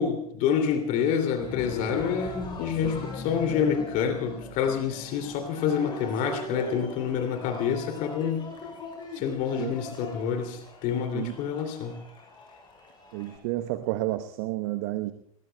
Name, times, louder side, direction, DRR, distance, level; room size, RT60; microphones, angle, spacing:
voice 1, 0.0-8.4 9.1-12.0, left 7 dB, 45° left, 5 dB, 2.8 m, -27 dB
Cheering, 1.4-13.4, left 2 dB, 25° left, 6.9 m, -40 dB
voice 2, 13.1-15.1, right 16 dB, 50° right, 10 dB, 1.0 m, -30 dB
28.0 x 20.5 x 2.3 m, 0.70 s
figure-of-eight pair, 90°, 19 cm